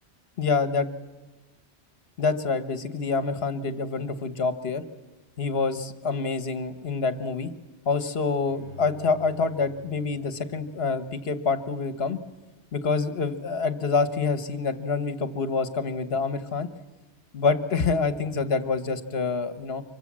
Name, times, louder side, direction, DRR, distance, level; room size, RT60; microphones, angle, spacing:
voice 1, 0.4-0.9 2.2-4.8 5.4-7.5 7.9-12.2 12.7-16.7 17.3-19.8, left 4 dB, 65° left, 11 dB, 1.4 m, -26 dB
Bowed string instrument, 8.5-11.6 12.0-12.1, left 2 dB, 35° right, 3.4 m, -47 dB
25.0 x 23.0 x 7.4 m, 1.2 s
omnidirectional pair, 1.2 m